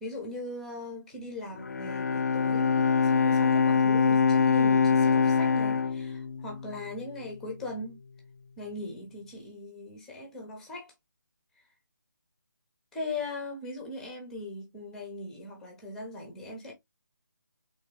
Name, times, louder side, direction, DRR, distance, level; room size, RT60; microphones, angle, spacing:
voice 1, 0.0-8.0 8.6-10.9 12.9-16.7, left 2 dB, 5° left, 0.5 m, -39 dB
Bowed string instrument, 1.5-7.0, left 5 dB, 55° left, 0.4 m, -24 dB
3.5 x 3.0 x 3.2 m
figure-of-eight pair, 165°, 11 cm